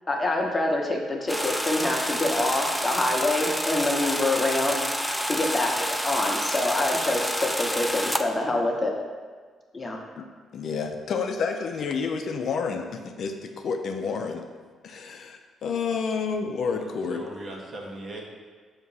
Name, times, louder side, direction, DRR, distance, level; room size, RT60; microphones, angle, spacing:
voice 1, 0.1-4.8 5.3-8.9 9.7-10.0, left 2 dB, 25° left, 1 dB, 0.9 m, -26 dB
sound 1, 1.3-8.2, equal, ahead, 0.4 m, -28 dB
voice 2, 10.5-14.4 14.8-17.2, left 5 dB, 60° left, 4 dB, 0.5 m, -29 dB
voice 3, 16.7-18.2, right 2 dB, 45° right, -1 dB, 1.1 m, -39 dB
6.1 x 2.9 x 5.4 m, 1.5 s
cardioid pair, 90°, 0 cm